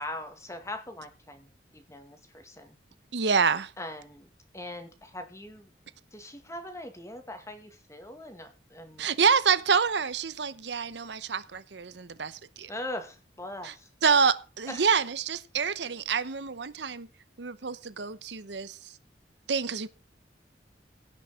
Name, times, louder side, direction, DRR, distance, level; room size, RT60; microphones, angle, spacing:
voice 1, 0.0-2.8 3.8-4.3 4.5-5.7 6.1-9.1 12.7-13.9 14.7-14.9, left 1 dB, 15° left, 2.1 m, -41 dB
voice 2, 3.1-3.7 9.0-12.7 13.6-13.7 14.0-17.1 17.4-18.9 19.5-19.9, right 6 dB, 75° right, 0.9 m, -27 dB
17.0 x 6.1 x 5.7 m
head